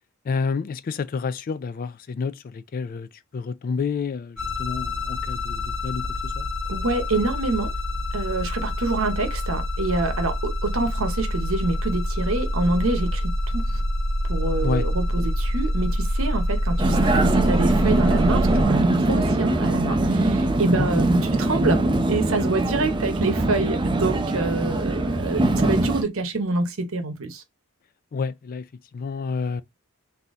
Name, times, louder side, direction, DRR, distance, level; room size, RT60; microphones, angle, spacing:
voice 1, 0.3-6.5 14.6-14.9 20.7-20.9 28.1-28.6 28.9-29.6, left 5 dB, 40° left, 0.3 m, -29 dB
sound 1, 4.4-18.6, left 1 dB, 5° left, 1.9 m, -26 dB
voice 2, 6.7-7.7 8.1-13.8 14.3-27.4, right 2 dB, 65° right, 0.9 m, -26 dB
Vehicle, 16.8-26.0, right 2 dB, 20° right, 0.5 m, -22 dB
4.0 x 2.8 x 3.6 m
head